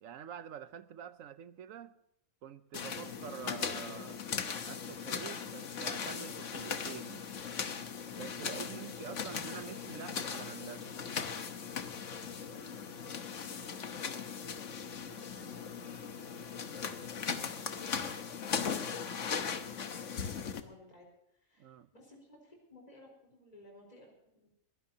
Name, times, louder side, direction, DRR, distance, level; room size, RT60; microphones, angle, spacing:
voice 1, 0.0-2.0 2.4-4.2 4.6-7.3 8.1-10.9 21.6-21.9, right 9 dB, 70° right, 1.1 m, -46 dB
sound 1, 2.7-20.6, left 6 dB, 65° left, 1.4 m, -39 dB
voice 2, 8.5-10.2 12.3-13.8 14.2-19.0 19.3-24.6, left 1 dB, 30° left, 4.2 m, -59 dB
22.0 x 17.0 x 2.8 m
omnidirectional pair, 1.4 m